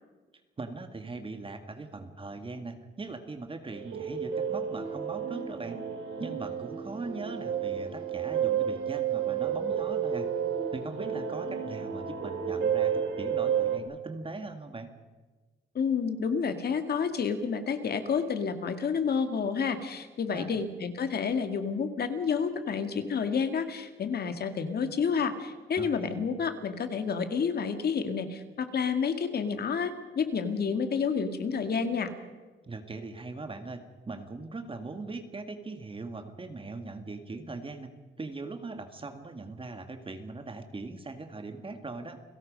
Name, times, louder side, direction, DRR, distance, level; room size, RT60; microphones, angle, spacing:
voice 1, 0.6-5.8 6.2-10.3 10.7-14.9 20.3-20.6 25.8-26.2 32.6-37.9 38.2-42.2, right 3 dB, 25° right, 7 dB, 1.8 m, -40 dB
sound 1, 3.7-13.8, right 8 dB, 80° right, 3.2 m, -31 dB
voice 2, 15.7-32.1, left 6 dB, 55° left, 8 dB, 2.1 m, -29 dB
29.5 x 17.0 x 5.3 m, 1.3 s
cardioid pair, 90°, 20 cm